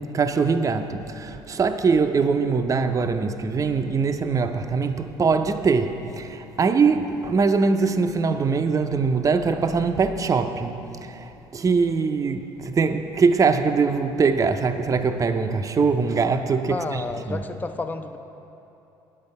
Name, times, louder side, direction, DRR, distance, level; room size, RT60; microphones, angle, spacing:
voice 1, 0.0-17.0 17.3-17.4, right 5 dB, 30° right, 7 dB, 0.6 m, -22 dB
voice 2, 16.7-18.2, left 3 dB, 15° left, 7 dB, 0.5 m, -30 dB
8.7 x 8.5 x 5.3 m, 2.9 s
supercardioid pair, 70°, 11 cm